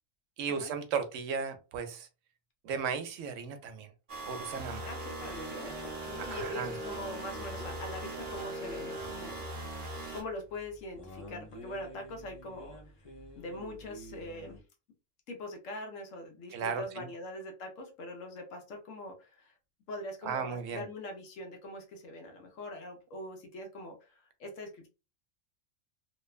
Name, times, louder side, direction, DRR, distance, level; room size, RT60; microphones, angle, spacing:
voice 1, 0.4-2.1 2.6-3.9 4.3-4.9 6.2-6.7 16.5-17.1 20.2-20.8, right 6 dB, 75° right, 8 dB, 0.9 m, -35 dB
Wavefolder Waveshaper Sine folding Modular synth clip, 4.1-10.2, right 2 dB, 45° right, 0.9 m, -40 dB
voice 2, 4.8-5.8 6.0-9.5 10.1-12.8 13.4-14.6 15.3-19.5 19.9-24.9, left 1 dB, 80° left, 3 dB, 1.1 m, -43 dB
sound 1, 5.2-14.6, left 1 dB, 40° left, 0.5 m, -49 dB
2.8 x 2.1 x 2.3 m, 0.29 s
omnidirectional pair, 1.4 m